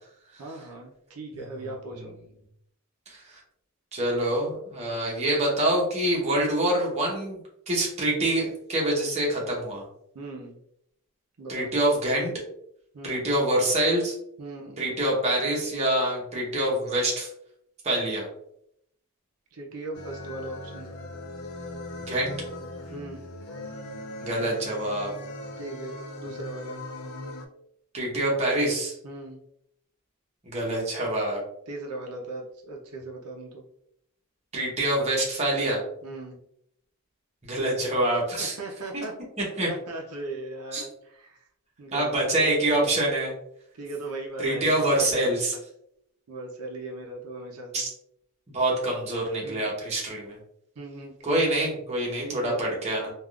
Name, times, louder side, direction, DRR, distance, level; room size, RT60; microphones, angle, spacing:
voice 1, 0.4-2.2 10.1-10.6 11.4-11.7 12.9-13.2 14.4-14.8 19.5-20.9 22.9-23.3 25.6-26.8 29.0-29.4 31.7-33.7 36.0-36.4 38.4-39.2 39.7-41.5 41.8-42.7 43.7-45.3 46.3-47.9 49.4-49.7 50.8-51.5 52.2-52.6, right 2 dB, 90° right, 0 dB, 0.6 m, -38 dB
voice 2, 3.1-3.4 3.9-7.4 7.7-9.9 11.5-12.3 13.0-14.1 14.8-17.3 17.8-18.3 22.0-22.3 24.2-25.1 27.9-29.0 30.5-31.4 34.5-35.8 37.4-38.5 38.9-39.0 39.6-39.7 40.7-40.9 41.9-43.3 44.4-45.5 47.7-47.9 48.5-50.4 51.2-53.1, right 1 dB, 30° right, -3 dB, 0.9 m, -26 dB
sound 1, 19.9-27.5, left 1 dB, 75° left, 0.4 m, -39 dB
3.4 x 2.4 x 2.3 m, 0.73 s
head